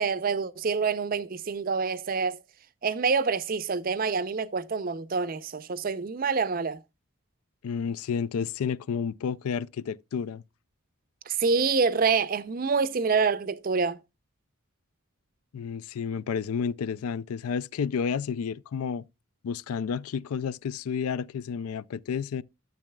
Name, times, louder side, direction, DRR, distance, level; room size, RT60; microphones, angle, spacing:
voice 1, 0.0-2.4 2.8-6.8 11.3-14.0, right 5 dB, 40° right, 0.5 m, -26 dB
voice 2, 7.6-10.4 15.5-19.0 19.4-22.4, left 6 dB, 85° left, 0.4 m, -31 dB
12.0 x 7.3 x 2.2 m
head